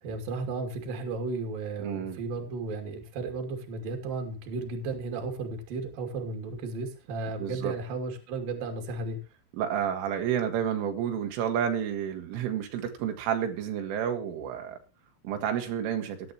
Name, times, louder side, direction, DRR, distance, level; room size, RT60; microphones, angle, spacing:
voice 1, 0.0-9.2, right 3 dB, 50° right, 5 dB, 4.1 m, -34 dB
voice 2, 1.8-2.2 7.4-7.7 9.6-14.8 15.2-16.2, right 9 dB, 90° right, 4 dB, 4.5 m, -30 dB
17.0 x 11.0 x 3.0 m, 0.33 s
omnidirectional pair, 5.5 m